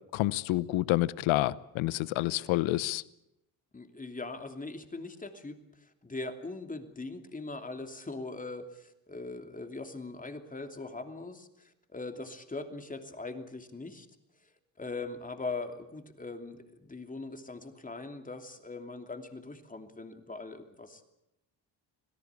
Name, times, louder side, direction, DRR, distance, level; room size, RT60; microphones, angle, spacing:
voice 1, 0.1-3.0, left 17 dB, 80° left, 19 dB, 0.9 m, -28 dB
voice 2, 3.7-14.1 14.4-14.5 14.8-21.2, left 3 dB, 15° left, 7 dB, 2.9 m, -41 dB
26.5 x 17.5 x 8.3 m, 0.85 s
cardioid pair, 95°, 46 cm